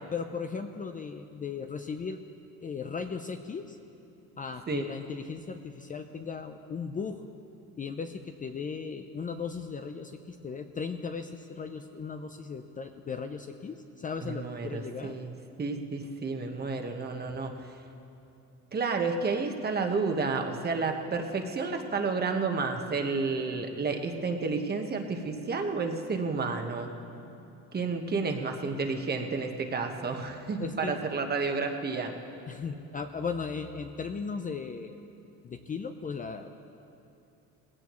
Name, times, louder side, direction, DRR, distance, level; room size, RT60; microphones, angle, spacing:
voice 1, 0.1-2.2 2.6-3.8 4.4-7.2 7.8-15.2 30.6-31.0 32.5-35.0 35.4-36.5, left 5 dB, 25° left, 7 dB, 0.5 m, -37 dB
voice 2, 14.2-15.3 15.6-17.5 18.7-26.9 27.7-32.1, right 4 dB, 30° right, 4 dB, 1.3 m, -31 dB
19.5 x 16.5 x 3.1 m, 2.7 s
cardioid pair, 115°, 32 cm